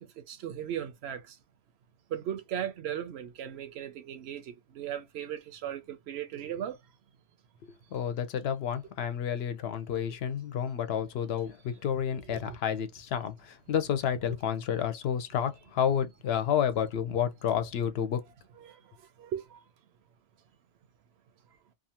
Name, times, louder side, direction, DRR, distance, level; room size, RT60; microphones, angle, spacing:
voice 1, 0.2-1.4 2.1-6.8 7.9-8.0 12.3-12.6 14.3-14.4 18.6-18.8 19.2-19.6, right 10 dB, 75° right, 0.8 m, -37 dB
voice 2, 7.9-13.3 13.7-18.2, left 8 dB, 70° left, 0.8 m, -30 dB
2.6 x 2.4 x 2.8 m
omnidirectional pair, 1.1 m